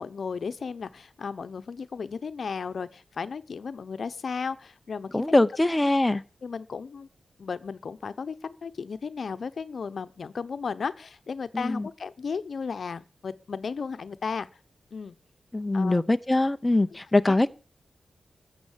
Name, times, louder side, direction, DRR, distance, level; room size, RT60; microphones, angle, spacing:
voice 1, 0.0-5.1 6.4-7.1 7.4-14.5 14.9-15.1 15.7-16.0 17.3-17.4, left 5 dB, 65° left, 0.9 m, -34 dB
voice 2, 5.1-6.2 11.5-11.9 15.5-17.5, left 2 dB, 20° left, 0.7 m, -23 dB
14.5 x 7.8 x 7.4 m
cardioid pair, 75°, 0 cm